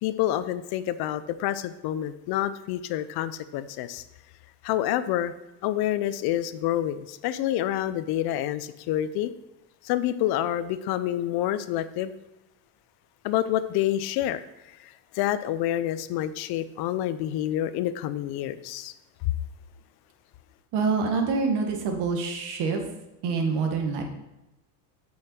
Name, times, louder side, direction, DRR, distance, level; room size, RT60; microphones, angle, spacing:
voice 1, 0.0-4.0 4.6-5.3 5.6-9.3 9.8-12.1 13.2-18.9 19.2-19.3, left 12 dB, 55° left, 0.7 m, -28 dB
voice 2, 20.7-22.8 23.2-24.0, right 4 dB, 60° right, 1.8 m, -26 dB
7.6 x 5.7 x 4.4 m
supercardioid pair, 110°, 46 cm